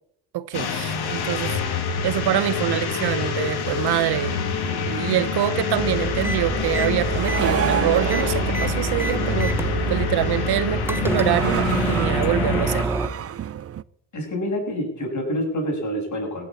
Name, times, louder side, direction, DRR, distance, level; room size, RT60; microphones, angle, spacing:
voice 1, 0.3-1.6 2.0-12.9, right 13 dB, 70° right, 0.8 m, -25 dB
Time Travel Blast, 0.5-12.8, left 6 dB, 65° left, 2.8 m, -26 dB
sound 1, 3.4-13.8, right 10 dB, 35° right, 0.5 m, -32 dB
sound 2, 5.8-13.1, right 3 dB, 5° right, 0.9 m, -27 dB
voice 2, 14.1-16.5, equal, 45° left, 7.0 m, -27 dB
16.5 x 7.5 x 8.5 m
cardioid pair, 95°, 41 cm